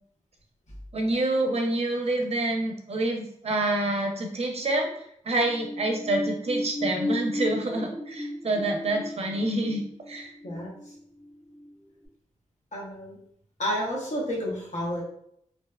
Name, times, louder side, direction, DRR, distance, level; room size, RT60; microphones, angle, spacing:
voice 1, 0.9-4.9 5.3-9.8 10.1-10.3, right 2 dB, 50° right, 2 dB, 0.5 m, -27 dB
sound 1, 5.4-11.7 12.0-12.1, left 1 dB, 20° right, 0.9 m, -35 dB
voice 2, 10.4-10.9 12.7-13.2 13.6-15.0, equal, 65° left, -4 dB, 0.8 m, -31 dB
2.6 x 2.1 x 2.2 m, 0.69 s
wide cardioid pair, 90°, 13 cm